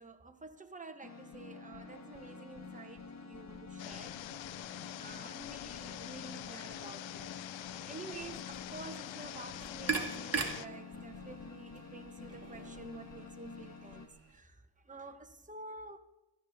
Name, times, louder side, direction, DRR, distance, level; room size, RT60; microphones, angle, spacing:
voice 1, 0.0-7.3 7.6-16.0, right 3 dB, 15° right, 1.2 m, -50 dB
sound 1, 1.0-14.1, left 4 dB, 35° left, 1.6 m, -49 dB
sound 2, 3.8-10.7, left 13 dB, 90° left, 0.6 m, -45 dB
sound 3, 9.3-14.4, right 4 dB, 35° right, 2.2 m, -41 dB
18.0 x 13.5 x 3.5 m
cardioid pair, 105°, 44 cm